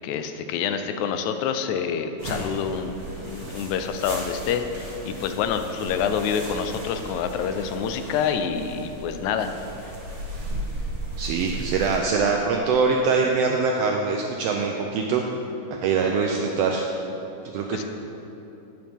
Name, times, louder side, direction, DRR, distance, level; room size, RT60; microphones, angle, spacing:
voice 1, 0.0-9.5 17.7-17.8, left 7 dB, 80° left, 8 dB, 1.9 m, -27 dB
sound 1, 2.2-12.0, right 1 dB, 35° right, 2.4 m, -36 dB
voice 2, 11.2-15.2 15.7-16.9 17.5-17.8, right 4 dB, 90° right, 1 dB, 1.4 m, -23 dB
11.0 x 9.0 x 3.6 m, 3.0 s
omnidirectional pair, 3.5 m